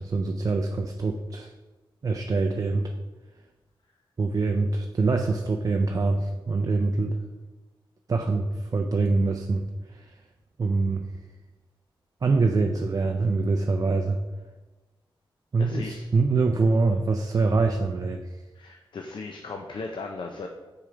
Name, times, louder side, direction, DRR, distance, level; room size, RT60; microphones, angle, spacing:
voice 1, 0.0-1.5 2.0-2.9 4.2-7.2 8.1-10.1 10.6-11.0 12.2-14.2 15.5-18.4, right 3 dB, 40° right, 4 dB, 0.4 m, -24 dB
voice 2, 15.6-16.1 18.6-20.5, left 3 dB, 60° left, 3 dB, 0.6 m, -37 dB
6.6 x 4.8 x 3.8 m, 1.2 s
wide cardioid pair, 100°, 9 cm